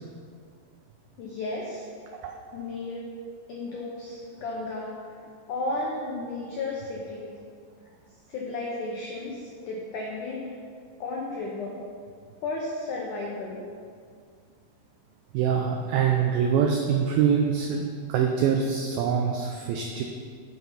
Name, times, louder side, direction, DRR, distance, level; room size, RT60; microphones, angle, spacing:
voice 1, 1.2-1.9 2.5-3.1 3.5-5.2 5.5-7.3 8.3-10.5 11.0-11.8 12.4-13.7, left 2 dB, 85° left, -2 dB, 1.8 m, -33 dB
voice 2, 15.3-17.8 18.1-20.0, right 7 dB, 85° right, 2 dB, 2.1 m, -24 dB
9.6 x 5.6 x 5.7 m, 2.1 s
omnidirectional pair, 4.9 m